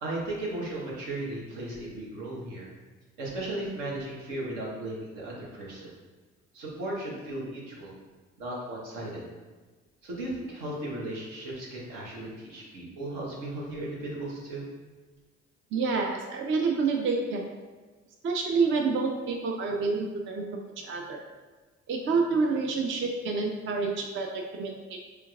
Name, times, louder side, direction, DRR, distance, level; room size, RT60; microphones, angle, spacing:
voice 1, 0.0-2.7 3.2-5.9 6.5-7.9 8.4-9.3 10.0-14.7, right 1 dB, 70° right, -4 dB, 1.2 m, -36 dB
voice 2, 15.7-17.4 18.2-20.4 20.8-21.2 21.9-25.0, right 4 dB, 35° right, 2 dB, 0.5 m, -28 dB
4.4 x 3.4 x 2.4 m, 1.3 s
figure-of-eight pair, 50°, 35 cm